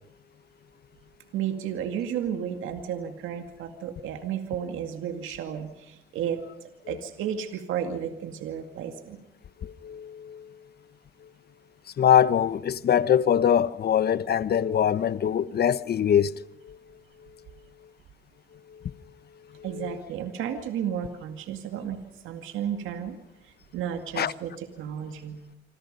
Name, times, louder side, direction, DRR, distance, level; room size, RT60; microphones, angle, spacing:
voice 1, 1.3-6.4 6.9-9.2 19.6-22.0 22.2-23.2 23.4-25.4, right 9 dB, 90° right, 2.2 m, -33 dB
voice 2, 9.6-10.5 12.0-16.8 18.7-18.8 19.5-20.0 24.2-24.3, left 9 dB, 55° left, 1.0 m, -23 dB
27.0 x 26.5 x 5.4 m
cardioid pair, 90°, 20 cm